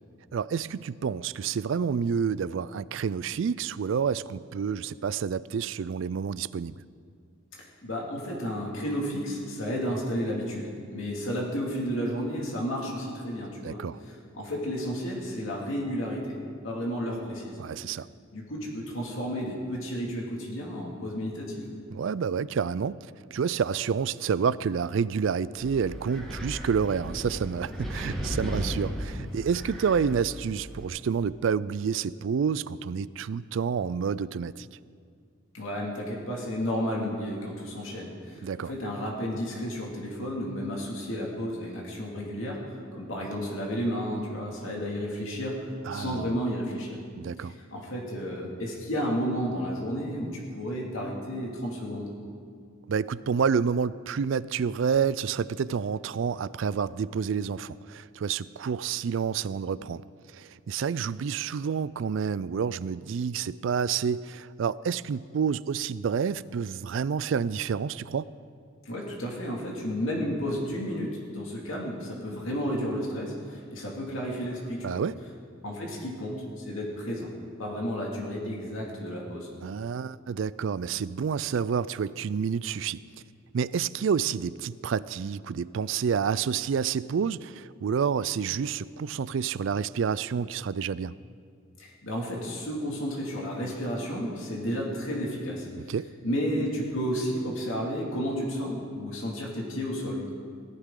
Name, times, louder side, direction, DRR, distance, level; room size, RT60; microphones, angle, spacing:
voice 1, 0.3-6.8 13.6-14.0 17.6-18.1 21.9-34.7 38.4-38.7 45.9-46.4 47.2-47.5 52.9-60.0 60.3-68.3 74.8-75.2 79.6-83.0 83.5-91.2 95.9-96.1, right 6 dB, 65° right, 18 dB, 0.3 m, -29 dB
voice 2, 7.5-13.8 14.3-16.4 16.6-17.6 18.3-21.6 35.5-47.0 47.4-52.1 68.8-75.0 75.6-77.3 77.6-79.5 91.8-95.9 96.2-100.2, equal, 75° left, -2 dB, 2.3 m, -32 dB
Wind, 25.6-30.8, equal, ahead, 2.0 m, -35 dB
18.0 x 14.5 x 3.8 m, 2.2 s
head